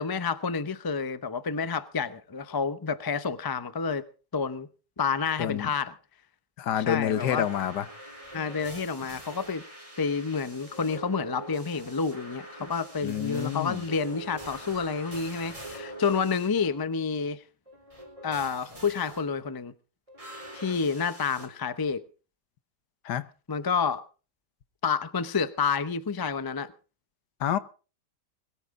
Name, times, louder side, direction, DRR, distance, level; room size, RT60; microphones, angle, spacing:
voice 1, 0.0-4.0 4.3-4.7 5.0-5.9 6.9-7.5 8.3-9.6 10.0-17.4 18.2-19.7 20.5-22.0 23.5-24.0 24.8-26.7, left 5 dB, 30° left, 0.4 m, -29 dB
voice 2, 5.4-5.7 6.6-7.9 13.0-13.8 23.0-23.3 27.4-27.6, left 10 dB, 80° left, 1.5 m, -28 dB
sound 1, 7.2-16.8 17.7-19.2 20.1-21.5, right 1 dB, 20° right, 4.5 m, -44 dB
21.5 x 14.0 x 3.7 m
omnidirectional pair, 1.8 m